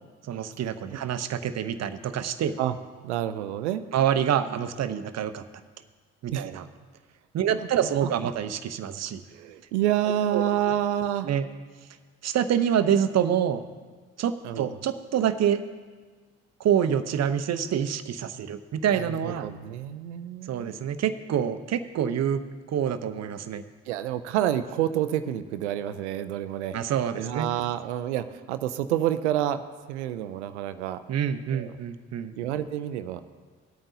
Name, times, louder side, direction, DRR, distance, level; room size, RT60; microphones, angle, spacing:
voice 1, 0.3-2.6 3.9-5.4 6.2-6.6 7.3-9.2 10.3-10.4 11.2-11.5 12.2-13.6 14.2-15.6 16.6-19.5 20.5-22.4 22.7-23.6 26.7-27.5 31.1-32.3, right 9 dB, 50° right, 11 dB, 0.7 m, -26 dB
voice 2, 3.0-3.8 6.3-6.5 7.6-7.7 8.0-8.1 9.3-11.3 14.4-14.8 18.9-20.8 23.9-26.8 27.2-29.6 29.9-31.0 31.5-31.8 32.4-33.2, right 11 dB, 90° right, 11 dB, 0.5 m, -28 dB
17.5 x 8.8 x 2.7 m, 1.4 s
hypercardioid pair, 50°, 33 cm